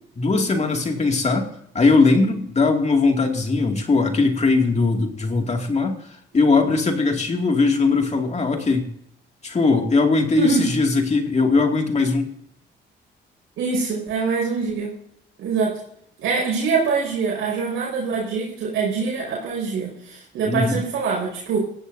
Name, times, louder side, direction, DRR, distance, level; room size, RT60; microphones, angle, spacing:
voice 1, 0.2-1.5 1.7-6.0 6.3-8.9 9.4-12.3 20.5-20.8, left 3 dB, 35° left, 3 dB, 2.4 m, -20 dB
voice 2, 10.4-10.7 13.6-14.9 15.4-15.8 16.2-21.6, right 5 dB, 85° right, -4 dB, 5.8 m, -24 dB
18.5 x 14.5 x 2.7 m, 0.71 s
cardioid pair, 90°, 20 cm